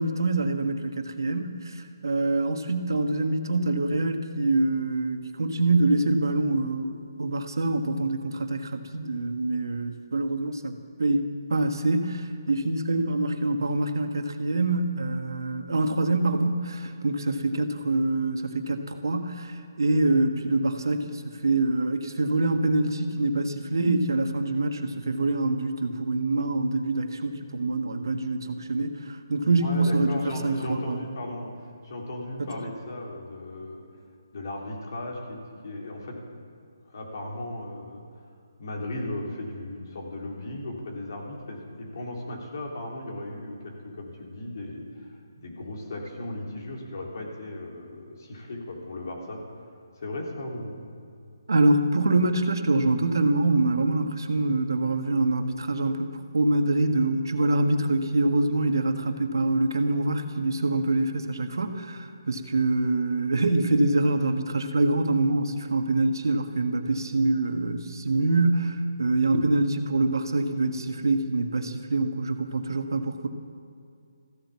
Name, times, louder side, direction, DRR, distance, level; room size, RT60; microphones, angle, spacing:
voice 1, 0.0-31.0 32.4-32.5 51.5-73.3, right 2 dB, 75° right, 6 dB, 1.4 m, -25 dB
voice 2, 29.6-33.8 34.3-36.2 36.9-38.0 38.6-49.4 50.0-50.8, left 1 dB, 55° left, -1 dB, 3.6 m, -36 dB
15.0 x 11.5 x 7.2 m, 2.4 s
figure-of-eight pair, 150°, 2 cm